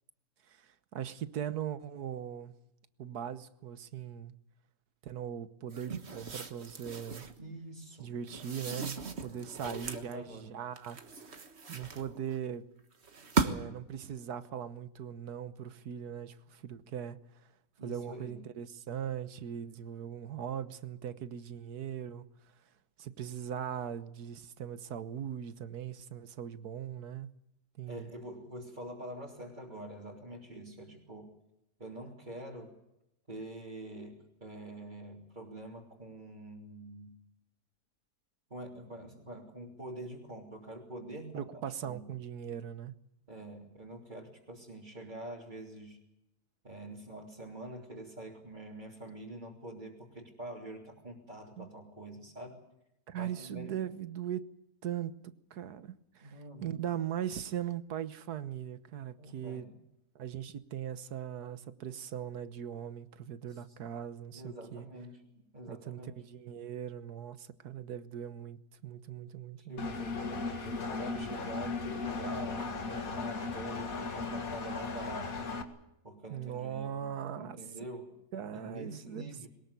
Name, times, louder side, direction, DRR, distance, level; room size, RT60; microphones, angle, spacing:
voice 1, 0.5-2.5 3.0-4.3 5.0-7.2 8.0-11.3 11.7-12.7 13.4-17.2 17.8-22.3 23.0-27.3 27.8-28.1 41.3-42.9 51.6-51.7 53.1-54.5 54.8-59.7 60.1-64.9 65.7-69.9 76.3-77.6 78.3-79.3, right 9 dB, 90° right, 1.6 m, -40 dB
sound 1, 5.7-7.4 8.3-10.1 10.8-12.4 13.0-13.8, right 4 dB, 45° right, 1.6 m, -37 dB
voice 2, 7.4-8.1 9.3-10.6 17.8-18.5 27.9-31.4 31.8-32.7 33.3-37.2 38.5-42.2 43.3-46.0 46.6-52.6 53.2-53.8 56.2-56.8 59.2-59.8 63.5-63.6 64.3-65.2 65.5-66.1 69.6-70.1 70.6-75.5 76.0-78.1 78.5-79.5, right 1 dB, 30° right, 3.6 m, -46 dB
Engine, 69.8-75.6, left 4 dB, 65° left, 2.3 m, -36 dB
22.5 x 20.0 x 8.4 m
omnidirectional pair, 1.6 m